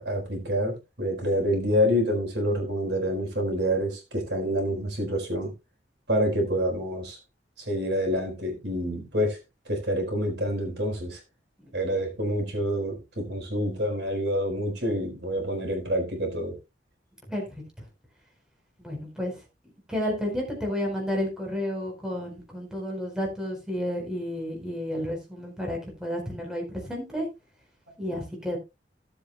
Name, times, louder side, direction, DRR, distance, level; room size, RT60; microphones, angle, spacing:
voice 1, 0.0-5.5 6.1-7.2 7.6-9.4 9.7-11.2 11.7-16.6, equal, 70° right, 4.2 m, -27 dB
voice 2, 18.8-19.3 19.9-27.3 28.0-28.6, equal, 5° right, 4.3 m, -31 dB
17.5 x 7.8 x 2.2 m
head